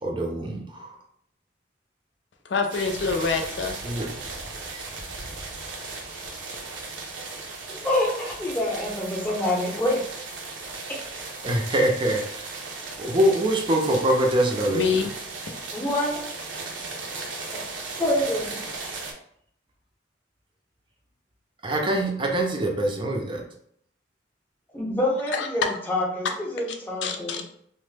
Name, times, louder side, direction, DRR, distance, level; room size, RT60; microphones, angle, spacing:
voice 1, 0.0-0.9 3.8-4.1 4.7-4.8 11.4-12.5 13.0-14.8 21.6-23.4, right 1 dB, 25° right, 1 dB, 0.5 m, -24 dB
voice 2, 2.4-3.8 14.6-15.1 25.3-25.5 26.2-26.3 27.0-27.5, left 5 dB, 70° left, 4 dB, 0.4 m, -26 dB
sound 1, 2.7-19.1, right 3 dB, 80° right, 0.6 m, -36 dB
voice 3, 7.7-10.0 15.7-16.2 17.1-17.6 18.0-18.5 24.7-27.4, left 1 dB, 10° left, -3 dB, 0.7 m, -26 dB
2.9 x 2.1 x 3.2 m, 0.68 s
head